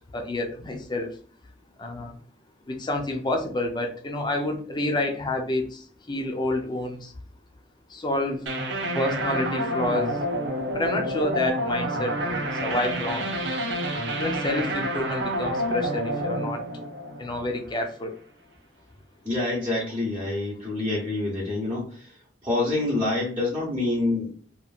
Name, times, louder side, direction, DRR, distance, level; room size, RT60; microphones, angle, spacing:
voice 1, 0.1-1.2 1.8-2.2 2.7-7.1 7.9-8.5 8.9-10.2 10.7-13.3 14.2-16.6 17.2-18.1, left 1 dB, 25° left, 3 dB, 0.5 m, -29 dB
sound 1, 8.5-17.8, equal, 75° right, 0.6 m, -28 dB
voice 2, 19.2-24.3, left 2 dB, 15° right, -9 dB, 0.9 m, -27 dB
3.0 x 2.5 x 2.4 m, 0.43 s
head